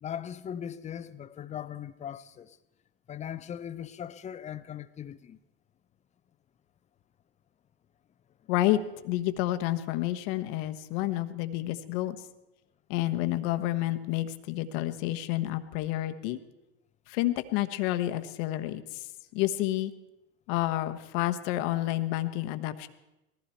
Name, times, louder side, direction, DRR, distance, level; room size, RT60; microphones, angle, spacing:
voice 1, 0.0-2.6 3.1-5.4, left 9 dB, 20° left, 0.7 m, -39 dB
voice 2, 8.5-12.2 12.9-16.4 17.1-19.9 20.5-22.9, left 15 dB, 55° left, 1.2 m, -29 dB
20.0 x 15.0 x 4.5 m
hypercardioid pair, 95°, 31 cm